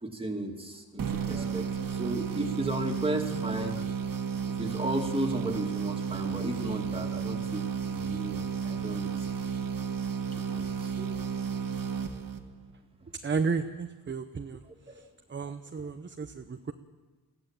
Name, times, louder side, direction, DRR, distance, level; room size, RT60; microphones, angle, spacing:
voice 1, 0.0-4.0 4.5-9.7 10.3-11.2 14.9-15.0, right 1 dB, 15° right, 3 dB, 2.5 m, -35 dB
sound 1, 1.0-12.7, right 6 dB, 60° right, 1.9 m, -33 dB
voice 2, 13.2-14.6 15.3-16.7, right 5 dB, 30° right, 8 dB, 0.8 m, -32 dB
21.0 x 15.0 x 9.0 m, 1.3 s
wide cardioid pair, 130°, 38 cm